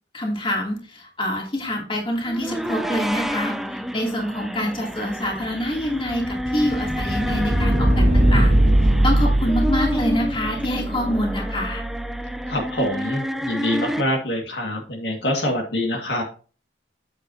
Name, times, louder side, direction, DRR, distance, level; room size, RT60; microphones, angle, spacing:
voice 1, 0.1-8.5 9.0-11.8, left 1 dB, 30° left, 0 dB, 2.7 m, -26 dB
sound 1, 2.2-14.0, equal, ahead, 0.5 m, -30 dB
sound 2, 5.4-12.3, right 1 dB, 65° right, 1.7 m, -21 dB
voice 2, 12.5-16.2, left 1 dB, 65° left, 2 dB, 2.0 m, -25 dB
8.5 x 8.3 x 2.8 m, 0.37 s
head